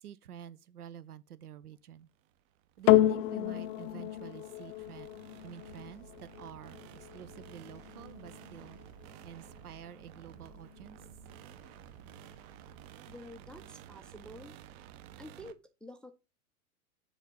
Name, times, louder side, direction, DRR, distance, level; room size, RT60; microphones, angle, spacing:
voice 1, 0.0-2.1 2.8-5.1 5.4-8.8 9.2-11.0, right 10 dB, 80° right, 0.8 m, -48 dB
sound 1, 2.2-15.5, right 10 dB, 45° right, 0.8 m, -53 dB
sound 2, 2.9-11.4 12.2-12.3, left 14 dB, 55° left, 0.6 m, -32 dB
voice 2, 13.1-14.5 15.2-16.1, left 1 dB, ahead, 0.4 m, -49 dB
7.2 x 4.2 x 5.3 m
hypercardioid pair, 100°, 45 cm